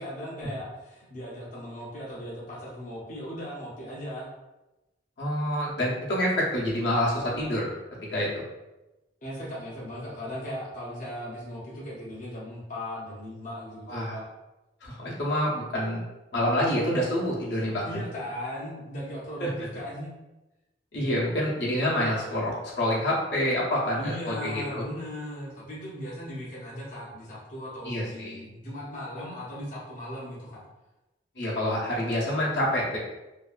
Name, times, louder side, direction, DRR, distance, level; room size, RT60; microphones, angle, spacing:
voice 1, 0.0-4.3 9.2-14.3 17.8-20.1 24.0-30.7, equal, 45° left, -7 dB, 0.6 m, -38 dB
voice 2, 5.2-7.7 8.1-8.4 13.9-14.1 14.8-16.0 16.3-18.0 19.4-19.5 20.9-24.8 27.8-28.4 31.4-33.0, equal, 75° left, -5 dB, 0.8 m, -27 dB
2.6 x 2.3 x 2.4 m, 1.0 s
head